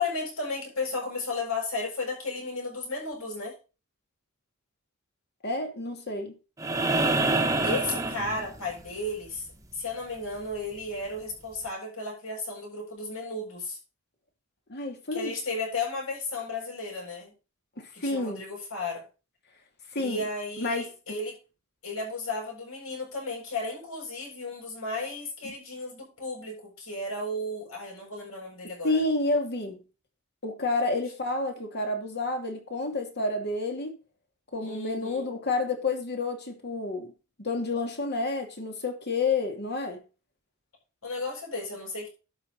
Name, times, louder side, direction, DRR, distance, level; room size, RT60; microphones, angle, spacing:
voice 1, 0.0-3.5 7.6-9.5 9.7-13.8 15.1-17.3 17.9-19.0 20.0-21.4 21.8-29.0 34.6-35.3 41.0-42.1, left 2 dB, 70° left, 7.7 m, -34 dB
voice 2, 5.4-6.4 14.7-15.3 17.8-18.4 19.9-20.2 20.6-20.8 25.4-25.5 28.8-29.8 30.4-33.9 34.5-37.1 37.4-40.0, left 3 dB, 50° left, 2.7 m, -29 dB
sound 1, 6.6-8.9 10.8-10.9, right 2 dB, 15° right, 1.2 m, -26 dB
12.0 x 6.0 x 5.4 m
head